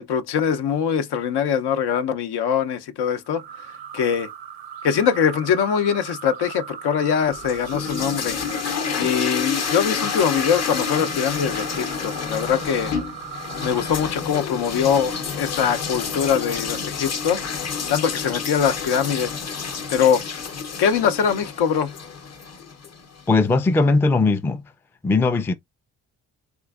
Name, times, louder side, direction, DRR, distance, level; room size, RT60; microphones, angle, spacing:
voice 1, 0.0-3.4 3.9-4.3 4.8-8.4 9.0-12.9 13.6-17.4 17.9-19.3 19.9-20.2 20.8-21.9, left 7 dB, 70° left, 0.7 m, -22 dB
sound 1, 3.2-14.1, right 9 dB, 85° right, 0.6 m, -38 dB
sound 2, 7.3-23.3, left 6 dB, 40° left, 0.8 m, -29 dB
voice 2, 23.3-24.6 25.0-25.5, left 3 dB, 5° left, 0.3 m, -19 dB
3.5 x 3.0 x 2.3 m
supercardioid pair, 60°, 41 cm